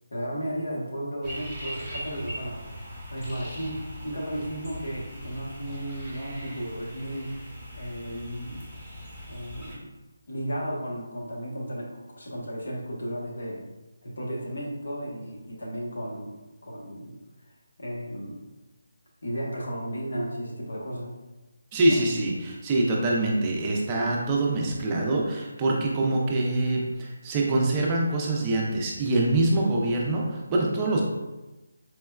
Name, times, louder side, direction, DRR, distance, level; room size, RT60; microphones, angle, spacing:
voice 1, 0.1-7.3 7.7-8.6 9.3-9.9 10.3-11.9 12.2-13.7 14.0-16.4 16.6-17.2 17.8-18.4 19.2-21.2 21.9-22.0, equal, 70° left, -3 dB, 0.9 m, -34 dB
sound 1, 1.2-9.8, equal, 10° left, 1.0 m, -40 dB
voice 2, 21.7-31.0, right 2 dB, 20° right, -2 dB, 0.5 m, -25 dB
4.3 x 2.2 x 2.2 m, 1.1 s
figure-of-eight pair, 160°, 0 cm